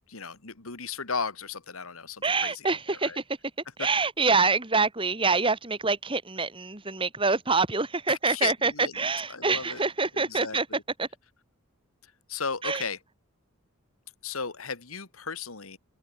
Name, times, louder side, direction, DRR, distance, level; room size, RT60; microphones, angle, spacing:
voice 1, 0.1-3.2 8.1-9.8 10.1-10.8 12.3-13.0 14.2-15.8, left 5 dB, 80° left, 2.4 m, -35 dB
voice 2, 2.2-3.2 3.8-10.7 11.0-11.1 12.6-12.8, right 4 dB, 25° right, 2.4 m, -26 dB
open air
head